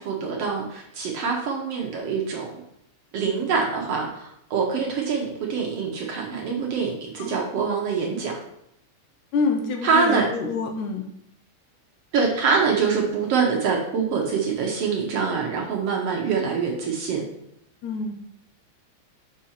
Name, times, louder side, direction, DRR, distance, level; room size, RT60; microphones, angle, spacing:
voice 1, 0.0-2.5 3.1-8.4 9.8-10.3 12.1-17.2, right 5 dB, 65° right, 0 dB, 1.7 m, -25 dB
voice 2, 9.3-11.0 17.8-18.1, left 4 dB, 75° left, 4 dB, 2.2 m, -27 dB
6.2 x 5.6 x 4.3 m, 0.75 s
omnidirectional pair, 3.5 m